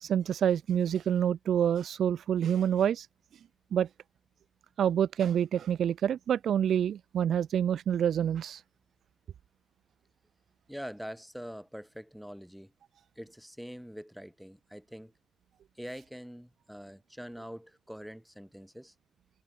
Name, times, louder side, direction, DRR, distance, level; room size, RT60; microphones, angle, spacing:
voice 1, 0.0-3.1 3.7-3.9 4.8-8.6, right 9 dB, 70° right, 0.4 m, -27 dB
voice 2, 10.7-12.7 13.2-15.1 15.8-18.9, equal, ahead, 7.7 m, -44 dB
cardioid pair, 80°, 0 cm